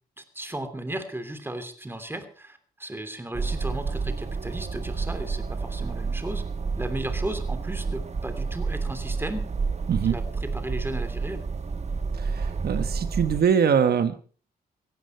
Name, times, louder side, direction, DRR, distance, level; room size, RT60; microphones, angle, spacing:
voice 1, 0.2-6.4 6.8-9.4 10.0-11.4, right 1 dB, 15° right, 8 dB, 2.9 m, -35 dB
sound 1, 3.3-13.4, right 4 dB, 45° right, 1.5 m, -30 dB
voice 2, 12.2-14.1, right 7 dB, 85° right, 10 dB, 1.3 m, -23 dB
16.5 x 16.0 x 4.4 m, 0.41 s
wide cardioid pair, 100°, 16 cm